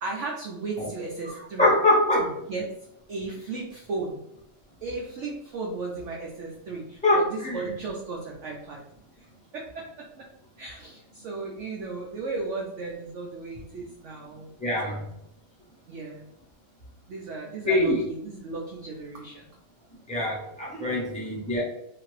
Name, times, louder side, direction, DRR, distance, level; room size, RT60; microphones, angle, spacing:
voice 1, 0.0-1.7 2.5-2.7 3.1-4.2 4.8-8.8 9.2-9.3 9.5-10.3 10.6-15.1 15.9-16.3 17.1-19.5, right 3 dB, 85° right, -2 dB, 0.6 m, -35 dB
voice 2, 1.6-2.3 7.0-7.7 14.6-15.0 17.6-18.1 20.1-21.6, left 1 dB, 5° left, -6 dB, 0.5 m, -23 dB
2.8 x 2.5 x 3.1 m, 0.79 s
omnidirectional pair, 1.8 m